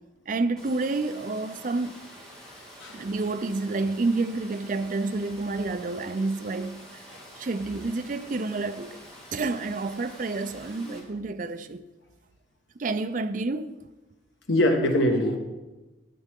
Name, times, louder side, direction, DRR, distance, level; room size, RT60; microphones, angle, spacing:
voice 1, 0.3-2.0 2.9-7.0 7.4-9.0 9.3-11.8 12.8-13.8, right 3 dB, 45° right, 0.4 m, -29 dB
Water, 0.6-11.0, equal, 5° left, 2.3 m, -47 dB
voice 2, 14.5-15.4, left 1 dB, 75° left, 1.4 m, -23 dB
12.0 x 9.0 x 3.7 m
head